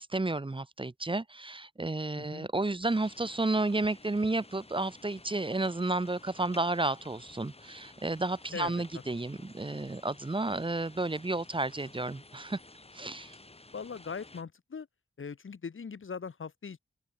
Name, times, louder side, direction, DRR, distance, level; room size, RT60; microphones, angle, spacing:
voice 1, 0.0-12.6 12.9-13.3, right 2 dB, 25° right, 1.1 m, -32 dB
voice 2, 2.2-2.5 8.5-8.8 13.7-14.9 15.2-16.8, left 5 dB, 75° left, 1.9 m, -40 dB
Steady Rainstorm, 2.9-14.4, left 2 dB, 30° left, 4.0 m, -53 dB
open air
wide cardioid pair, 100°, 21 cm